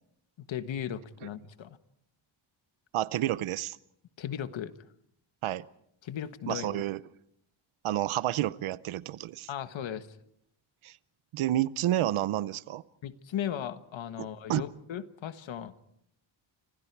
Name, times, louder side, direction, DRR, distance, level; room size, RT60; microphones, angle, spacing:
voice 1, 0.5-1.8 4.2-4.7 6.0-6.8 9.5-10.1 13.0-15.7, left 9 dB, 70° left, 11 dB, 1.5 m, -36 dB
voice 2, 2.9-3.8 5.4-5.6 6.5-7.0 7.8-9.5 10.8-11.0 11.3-12.8 14.2-14.6, right 13 dB, 90° right, 17 dB, 0.8 m, -30 dB
30.0 x 26.0 x 4.7 m, 0.72 s
wide cardioid pair, 145°, 48 cm